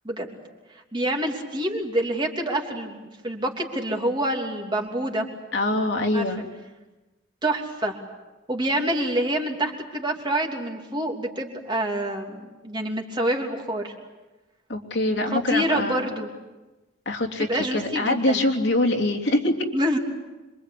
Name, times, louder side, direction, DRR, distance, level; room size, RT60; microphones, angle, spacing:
voice 1, 0.0-0.4 0.9-5.3 6.1-6.2 7.4-7.9 8.5-13.9 15.3-16.3 17.4-18.4 19.7-20.0, right 1 dB, 25° right, 1 dB, 3.1 m, -27 dB
voice 2, 5.5-6.4 14.7-16.1 17.0-19.6, left 1 dB, 55° left, 1 dB, 3.1 m, -24 dB
27.0 x 24.0 x 8.5 m, 1.1 s
head